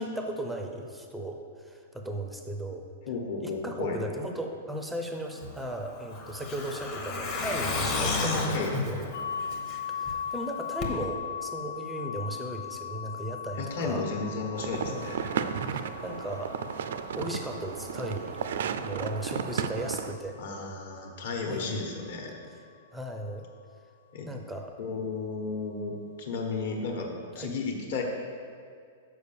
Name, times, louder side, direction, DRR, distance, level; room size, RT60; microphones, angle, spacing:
voice 1, 0.0-2.9 3.4-8.6 8.9-9.1 9.9-14.1 14.7-15.2 15.6-16.6 17.2-18.3 18.8-20.4 21.4-21.8 22.9-23.5 24.3-24.7 27.3-27.5, right 1 dB, ahead, 3 dB, 0.5 m, -36 dB
voice 2, 3.1-4.0 8.2-8.7 13.6-15.2 20.4-22.4 24.1-24.3 24.8-27.1 27.3-28.0, left 4 dB, 55° left, 1 dB, 1.2 m, -33 dB
Truck, 5.4-10.1 10.4-10.5 10.8-10.9, left 3 dB, 25° left, 0.8 m, -32 dB
sound 1, 9.1-20.9, left 8 dB, 80° left, 1.0 m, -39 dB
sound 2, 14.6-20.1, right 7 dB, 60° right, 0.4 m, -34 dB
6.7 x 4.9 x 7.0 m, 2.2 s
supercardioid pair, 180°, 0 cm